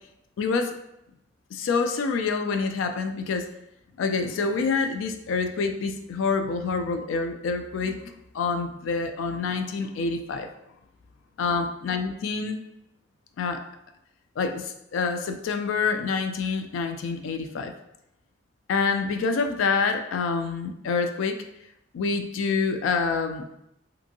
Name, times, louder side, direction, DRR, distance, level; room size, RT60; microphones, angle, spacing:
voice 1, 0.4-0.7 1.5-3.5 4.0-8.0 8.3-10.5 11.4-12.6 13.4-13.6 14.4-17.7 18.7-21.4 21.9-23.5, left 4 dB, 85° left, 7 dB, 0.3 m, -27 dB
2.7 x 2.6 x 2.6 m, 0.84 s
head